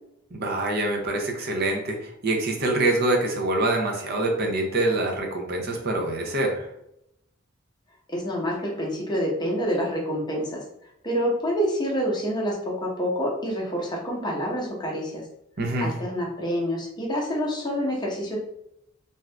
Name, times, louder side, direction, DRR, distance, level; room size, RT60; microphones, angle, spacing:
voice 1, 0.3-6.7 15.6-15.9, right 2 dB, 55° right, 1 dB, 0.7 m, -25 dB
voice 2, 8.1-10.6 11.0-15.2 15.8-18.4, equal, 20° left, -2 dB, 0.8 m, -27 dB
2.7 x 2.4 x 3.3 m, 0.79 s
head